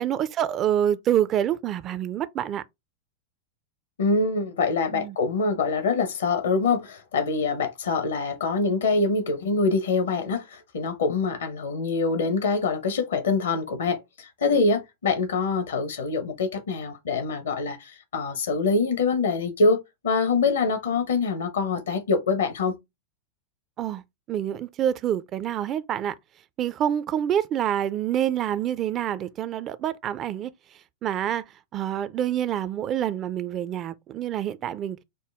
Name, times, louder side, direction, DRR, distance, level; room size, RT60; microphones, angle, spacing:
voice 1, 0.0-2.6 4.9-5.2 23.8-24.0 24.3-26.2 26.6-30.5 31.0-31.4 31.7-35.0, right 10 dB, 30° right, 0.4 m, -27 dB
voice 2, 4.0-22.8, left 4 dB, 65° left, 0.8 m, -25 dB
5.3 x 2.1 x 3.3 m
figure-of-eight pair, 90°, 0 cm